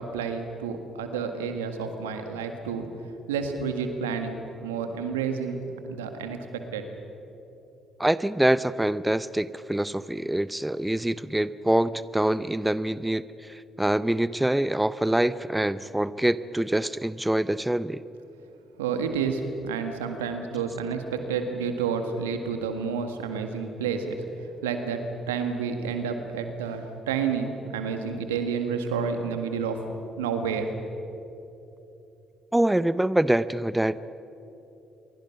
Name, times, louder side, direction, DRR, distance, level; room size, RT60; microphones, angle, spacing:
voice 1, 0.0-2.9 3.3-6.9 18.8-24.2 24.6-30.7, right 6 dB, 90° right, 6 dB, 1.8 m, -30 dB
voice 2, 8.0-18.0 32.5-34.0, right 1 dB, 10° right, 16 dB, 0.7 m, -25 dB
27.0 x 23.0 x 5.9 m, 2.9 s
hypercardioid pair, 50°, 0 cm